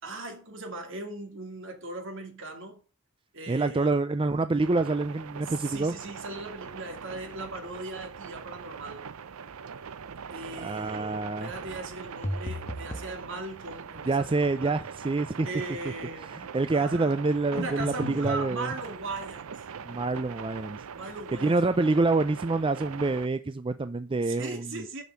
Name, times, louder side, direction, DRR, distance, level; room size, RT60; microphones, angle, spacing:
voice 1, 0.0-2.8 3.3-4.0 5.4-9.1 10.3-14.8 15.4-16.4 16.7-17.2 17.5-19.7 20.9-21.6 24.2-25.0, right 2 dB, 60° right, 2.5 m, -39 dB
voice 2, 3.5-5.9 10.6-11.5 14.1-15.5 16.3-18.7 19.8-20.8 21.4-24.8, right 3 dB, 25° right, 0.4 m, -27 dB
sound 1, 4.6-23.3, right 6 dB, 75° right, 0.5 m, -42 dB
sound 2, 12.2-13.1 17.6-18.4, equal, 30° left, 1.3 m, -34 dB
6.8 x 6.3 x 7.6 m
head